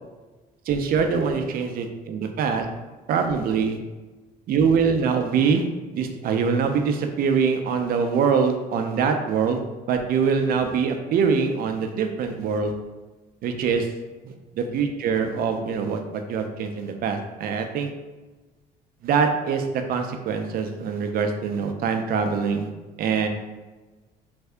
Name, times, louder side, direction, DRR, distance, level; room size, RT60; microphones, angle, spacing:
voice 1, 0.7-2.7 3.1-3.8 4.5-5.7 5.9-9.6 9.9-12.7 13.4-13.9 14.2-17.9 19.0-22.7 23.0-23.3, right 6 dB, 60° right, 6 dB, 0.5 m, -24 dB
3.3 x 2.7 x 3.4 m, 1.2 s
cardioid pair, 110°, 17 cm